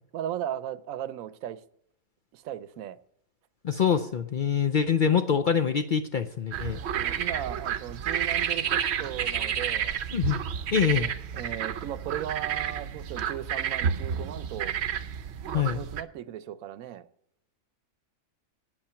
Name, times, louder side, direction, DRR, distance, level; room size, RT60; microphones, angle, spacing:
voice 1, 0.1-1.6 2.3-3.0 6.9-10.0 10.8-14.7 15.5-17.1, right 11 dB, 85° right, 1.0 m, -37 dB
voice 2, 3.6-6.8 10.1-10.4 10.7-11.1 15.5-15.8, left 7 dB, 60° left, 0.5 m, -25 dB
sound 1, 6.5-16.0, right 8 dB, 60° right, 0.8 m, -30 dB
8.7 x 8.7 x 5.7 m
omnidirectional pair, 1.4 m